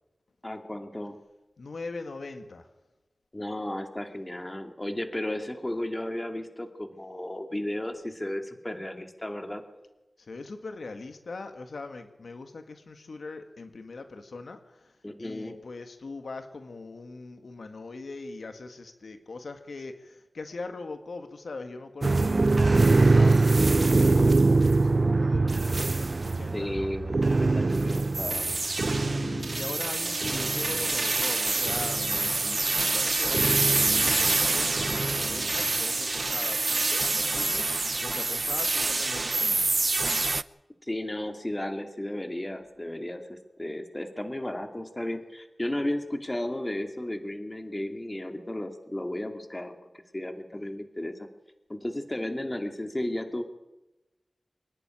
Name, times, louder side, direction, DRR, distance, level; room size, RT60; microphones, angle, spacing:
voice 1, 0.4-1.2 3.3-9.6 15.0-15.6 26.5-28.5 40.8-49.8 50.1-51.1 51.7-53.4, left 1 dB, 25° left, 6 dB, 2.5 m, -34 dB
voice 2, 1.6-2.7 10.2-26.9 28.8-39.7, left 3 dB, 85° left, 7 dB, 1.8 m, -41 dB
sound 1, 22.0-40.4, right 3 dB, 55° right, 0.6 m, -24 dB
sound 2, 29.9-37.0, right 3 dB, 70° right, 3.1 m, -46 dB
24.5 x 10.5 x 9.9 m, 1.0 s
wide cardioid pair, 50°, 0 cm